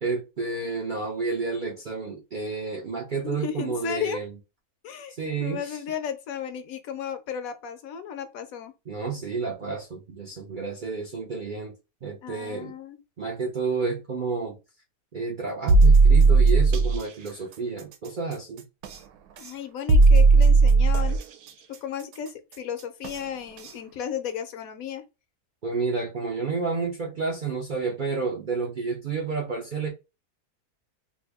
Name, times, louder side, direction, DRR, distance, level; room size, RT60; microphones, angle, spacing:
voice 1, 0.0-4.3 5.1-5.8 8.9-11.7 12.0-12.7 13.2-14.6 15.1-18.6 25.6-29.9, right 4 dB, 55° right, 0.5 m, -30 dB
voice 2, 3.2-4.2 4.8-8.7 12.2-13.0 19.4-21.2 21.8-25.0, left 8 dB, 75° left, 1.0 m, -34 dB
sound 1, 15.7-17.0 18.8-18.9 19.9-21.2 23.0-23.1 23.6-23.7, right 3 dB, 90° right, 1.1 m, -16 dB
2.6 x 2.5 x 3.4 m
omnidirectional pair, 1.6 m